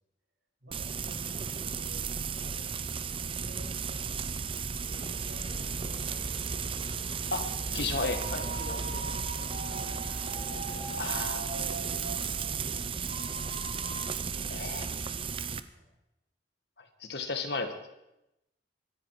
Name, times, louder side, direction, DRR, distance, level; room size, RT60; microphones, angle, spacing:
voice 1, 0.6-2.1 2.4-2.8 3.4-4.5 4.9-6.3 8.3-10.0 10.3-13.2 14.0-14.5 15.7-15.9, equal, 85° right, -5 dB, 7.7 m, -51 dB
Frying (food), 0.7-15.6, right 6 dB, 30° right, 0.6 m, -34 dB
sound 1, 4.8-11.0, equal, 45° left, 3.5 m, -49 dB
voice 2, 7.3-8.8 11.0-11.5 14.5-15.1 16.8-17.9, left 3 dB, 65° left, 7 dB, 1.8 m, -35 dB
sound 2, 7.8-14.0, right 3 dB, 50° right, 2.2 m, -42 dB
23.5 x 10.5 x 4.9 m, 0.91 s
head